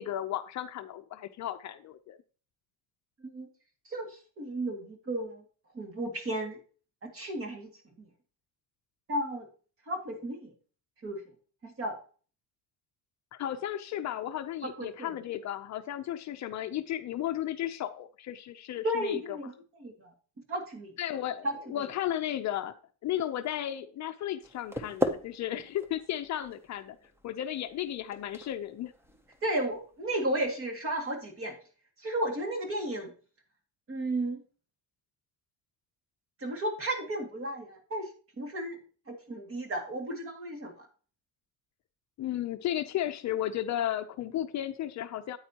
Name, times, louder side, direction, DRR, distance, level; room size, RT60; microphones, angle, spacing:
voice 1, 0.0-2.2 13.3-19.4 21.0-22.7 23.0-27.0 27.2-28.9 42.2-45.4, left 12 dB, 45° left, 8 dB, 0.5 m, -34 dB
voice 2, 3.9-5.4 5.7-6.6 7.0-7.7 9.1-9.5 9.9-10.5 11.0-11.2 11.6-12.0 14.6-15.2 18.8-20.1 20.5-20.9 21.4-21.9 29.4-31.6 32.0-33.1 33.9-34.4 36.4-38.1 38.4-38.8 39.1-40.9, right 1 dB, 35° right, 4 dB, 2.2 m, -34 dB
sound 1, 24.4-30.3, equal, 5° right, 0.6 m, -38 dB
9.1 x 8.8 x 2.9 m, 0.39 s
cardioid pair, 175°, 39 cm